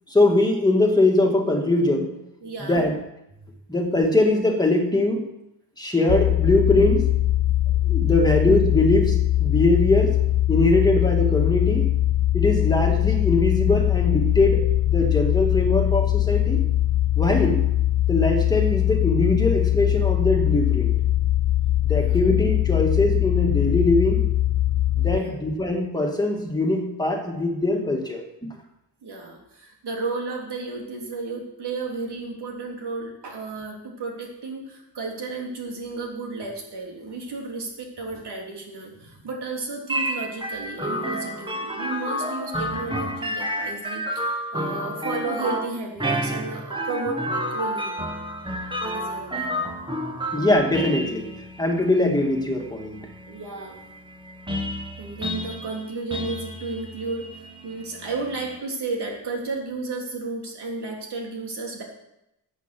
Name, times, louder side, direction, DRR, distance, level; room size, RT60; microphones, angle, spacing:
voice 1, 0.1-2.2 2.6-3.0 3.7-5.3 5.8-7.1 7.8-10.2 10.5-11.9 12.3-16.6 17.2-17.6 18.1-20.9 21.8-24.2 24.9-28.2 50.3-51.3 51.6-53.0, left 2 dB, 10° left, 1 dB, 2.1 m, -21 dB
voice 2, 2.4-2.9 8.2-8.4 21.9-22.2 25.0-25.3 29.0-48.0 48.8-49.7 53.2-53.9 55.0-61.8, right 3 dB, 75° right, 0 dB, 3.4 m, -33 dB
sound 1, 6.1-25.2, left 14 dB, 50° left, 0.5 m, -21 dB
sound 2, 39.9-58.6, equal, 10° right, 1.3 m, -31 dB
13.5 x 8.7 x 6.1 m, 0.86 s
wide cardioid pair, 140°, 41 cm